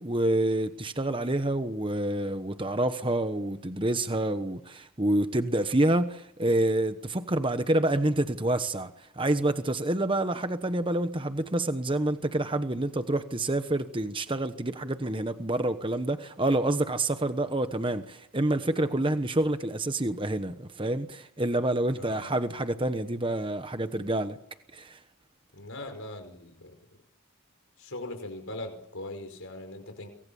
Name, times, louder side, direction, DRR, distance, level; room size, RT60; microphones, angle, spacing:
voice 1, 0.0-24.4 24.7-25.0, right 1 dB, 25° right, 1.1 m, -28 dB
voice 2, 22.0-22.3 25.5-26.7 27.8-30.1, left 1 dB, 60° left, 5.2 m, -40 dB
28.5 x 24.0 x 7.2 m
head